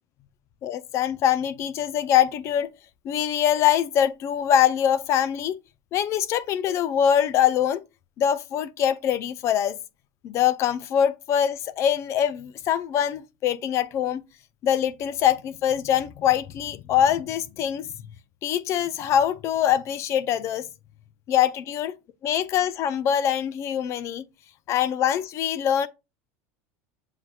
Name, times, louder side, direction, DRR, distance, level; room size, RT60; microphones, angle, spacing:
voice 1, 0.6-2.7 3.0-5.6 5.9-7.8 8.2-9.8 10.2-14.2 14.6-17.9 18.4-20.7 21.3-21.9 22.2-24.2 24.7-25.9, left 9 dB, 40° left, 0.4 m, -23 dB
7.3 x 2.8 x 2.3 m
supercardioid pair, 125°, 7 cm